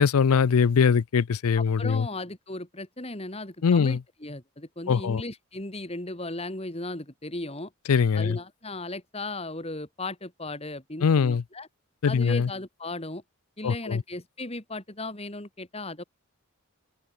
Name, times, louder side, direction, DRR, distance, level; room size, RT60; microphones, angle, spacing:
voice 1, 0.0-2.1 3.6-4.0 4.9-5.2 7.9-8.4 11.0-11.4 12.0-12.5 13.6-14.0, left 6 dB, 80° left, 0.5 m, -22 dB
voice 2, 1.6-7.7 8.2-11.7 12.1-13.2 13.6-16.0, left 2 dB, 25° left, 2.4 m, -36 dB
open air
head